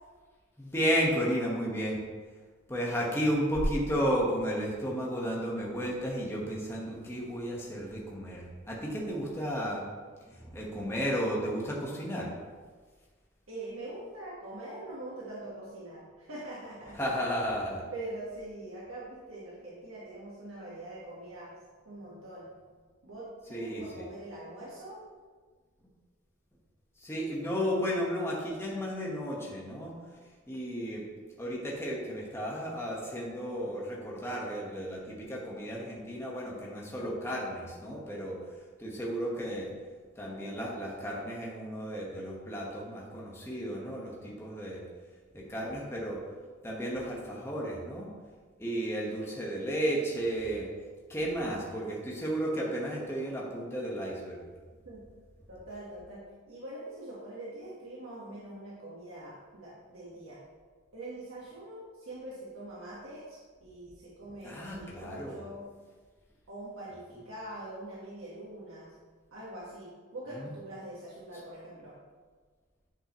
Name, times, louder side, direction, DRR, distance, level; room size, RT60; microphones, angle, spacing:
voice 1, 0.6-2.0 2.7-9.8 10.3-12.3 17.0-17.8 23.5-24.0 27.0-29.9 30.5-31.0 31.4-38.4 38.8-39.7 40.2-44.8 45.3-46.2 46.6-48.1 48.6-50.7 51.1-54.4 64.4-65.4 70.3-70.5, equal, 10° left, -3 dB, 1.3 m, -33 dB
voice 2, 13.5-17.0 17.9-21.5 21.8-22.5 23.0-25.0 54.8-55.0 55.5-60.4 60.9-65.7 66.5-68.9 69.3-71.9, right 1 dB, 85° right, -6 dB, 1.5 m, -43 dB
10.5 x 5.3 x 3.1 m, 1.5 s
head